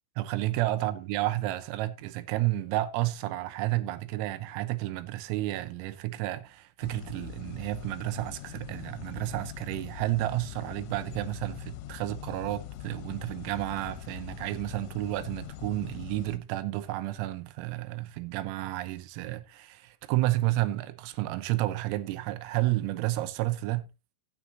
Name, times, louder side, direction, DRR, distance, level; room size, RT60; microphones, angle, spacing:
voice 1, 0.2-23.9, right 16 dB, 85° right, 3.6 m, -31 dB
sound 1, 6.8-16.4, left 12 dB, 80° left, 3.2 m, -43 dB
15.0 x 8.3 x 2.9 m
omnidirectional pair, 5.9 m